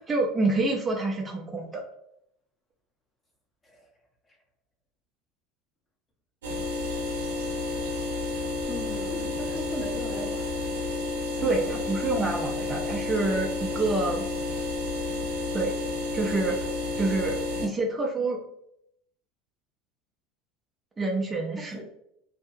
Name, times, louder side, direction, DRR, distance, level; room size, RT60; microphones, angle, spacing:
voice 1, 0.1-1.8 11.4-14.3 15.5-15.7 16.1-16.7 17.0-18.4 21.0-21.8, right 3 dB, 20° right, -1 dB, 0.6 m, -27 dB
sound 1, 6.4-17.7, left 3 dB, 90° right, 0.6 m, -31 dB
voice 2, 8.7-10.7 11.4-11.8 17.9-18.0 21.7-21.8, left 1 dB, 20° left, 0 dB, 0.9 m, -39 dB
2.7 x 2.2 x 2.6 m, 0.75 s
hypercardioid pair, 90°, 0 cm